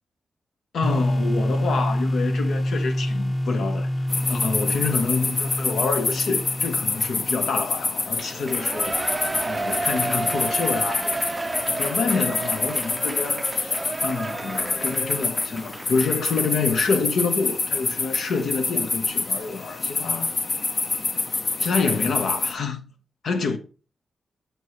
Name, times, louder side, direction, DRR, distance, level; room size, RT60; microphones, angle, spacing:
voice 1, 0.7-9.0 9.4-11.2 11.7-20.3 21.6-22.9 23.2-23.6, left 4 dB, 80° left, 1.0 m, -27 dB
sound 1, 0.8-7.6, left 1 dB, 25° left, 1.1 m, -26 dB
sound 2, 4.1-22.5, left 3 dB, 45° left, 0.7 m, -27 dB
Shout / Cheering, 8.2-16.5 16.9-17.0, right 2 dB, 25° right, 0.4 m, -31 dB
7.0 x 4.7 x 4.4 m
cardioid pair, 75°, 0 cm